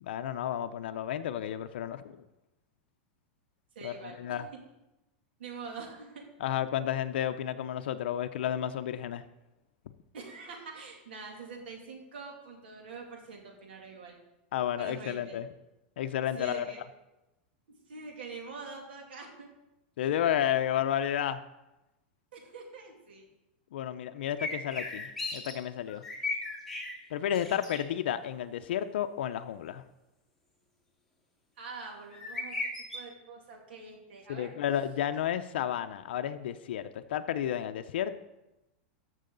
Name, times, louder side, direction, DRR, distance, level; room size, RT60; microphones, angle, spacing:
voice 1, 0.0-2.2 3.8-4.5 6.4-9.2 14.5-15.5 16.0-16.6 20.0-21.4 23.7-26.0 27.1-29.8 34.3-38.2, left 10 dB, 75° left, 8 dB, 0.6 m, -32 dB
voice 2, 3.7-4.6 5.4-6.2 10.1-14.2 14.8-15.4 16.4-16.8 17.7-19.5 22.3-23.2 31.6-32.6 32.9-34.5, right 4 dB, 85° right, 1 dB, 2.7 m, -45 dB
sound 1, 24.4-25.5 25.9-26.9 27.3-27.8 32.1-33.0, left 3 dB, ahead, 2.1 m, -36 dB
14.0 x 6.3 x 3.9 m, 0.96 s
supercardioid pair, 140°, 6 cm